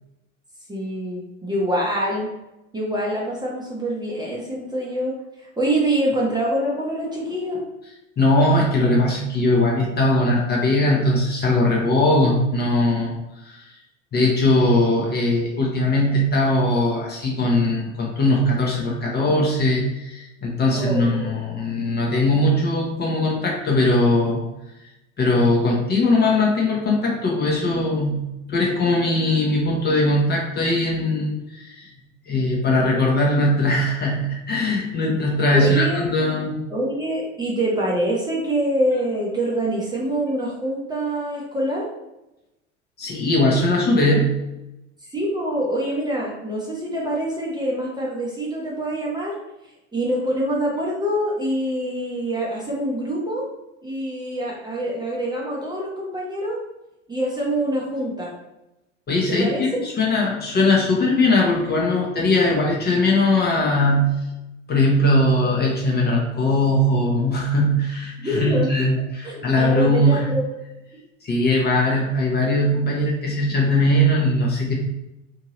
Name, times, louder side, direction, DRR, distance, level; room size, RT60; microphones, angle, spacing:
voice 1, 0.7-2.3 2.7-7.6 20.7-21.3 35.0-35.2 35.5-36.1 36.7-41.9 45.1-49.3 49.9-53.5 53.8-56.6 57.1-58.3 59.3-59.6 68.2-68.7 69.2-70.5, right 1 dB, 10° right, -4 dB, 0.8 m, -25 dB
voice 2, 8.2-13.2 13.4-13.7 14.1-24.5 25.2-31.9 32.3-36.6 43.0-44.4 59.1-64.1 64.7-70.3 71.2-74.7, left 1 dB, 25° left, -2 dB, 0.7 m, -20 dB
2.7 x 2.6 x 2.9 m, 0.93 s
figure-of-eight pair, 75°, 39 cm